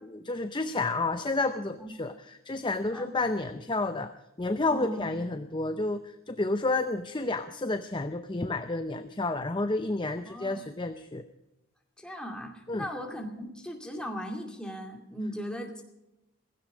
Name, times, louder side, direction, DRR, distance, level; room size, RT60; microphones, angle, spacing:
voice 1, 0.1-4.1 4.4-6.0 6.3-11.2 12.7-12.8, left 2 dB, 20° left, 9 dB, 0.6 m, -30 dB
voice 2, 4.7-5.1 10.3-10.7 12.0-15.8, equal, 5° left, 2 dB, 2.3 m, -38 dB
16.5 x 16.0 x 5.0 m, 0.93 s
head